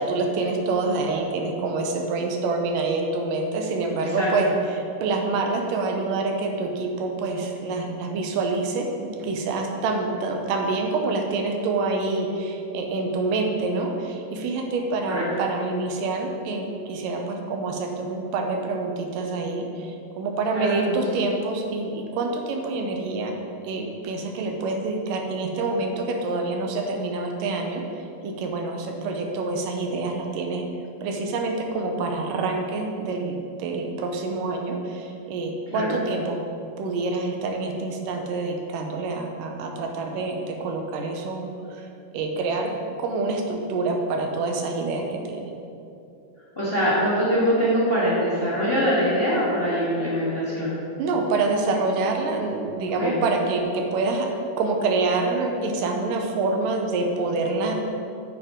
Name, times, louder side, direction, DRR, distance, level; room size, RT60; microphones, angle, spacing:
voice 1, 0.0-23.3 23.6-30.7 31.0-36.4 36.8-41.9 42.1-45.5 51.0-54.3 54.6-57.8, right 3 dB, 90° right, 3 dB, 2.5 m, -27 dB
voice 2, 20.5-21.0 35.7-35.9 46.5-50.7 53.0-53.1, equal, 25° left, -9 dB, 1.5 m, -23 dB
9.5 x 7.8 x 3.8 m, 2.7 s
omnidirectional pair, 3.7 m